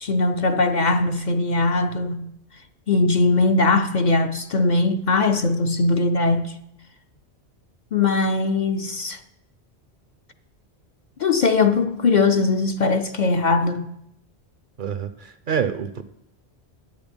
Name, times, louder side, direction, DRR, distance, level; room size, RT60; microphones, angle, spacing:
voice 1, 0.0-2.4 2.9-6.5 7.9-9.2 11.2-13.9, left 3 dB, 50° left, 0.6 m, -20 dB
voice 2, 14.8-16.0, right 7 dB, 55° right, 0.7 m, -27 dB
10.5 x 8.4 x 5.2 m
omnidirectional pair, 1.1 m